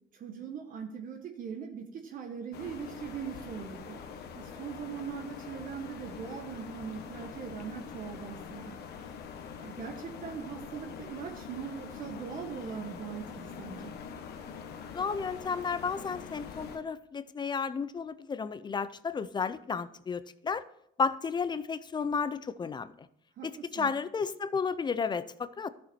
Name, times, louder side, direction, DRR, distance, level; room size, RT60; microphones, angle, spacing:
voice 1, 0.1-4.0 4.3-8.8 9.6-13.9 23.4-23.9, right 7 dB, 55° right, 4 dB, 1.2 m, -41 dB
sound 1, 2.5-16.8, left 6 dB, 75° left, 1.2 m, -44 dB
voice 2, 14.9-20.6 21.0-22.9 23.4-25.7, left 5 dB, 25° left, 15 dB, 0.5 m, -32 dB
12.5 x 6.8 x 4.4 m, 0.74 s
cardioid pair, 110°, 17 cm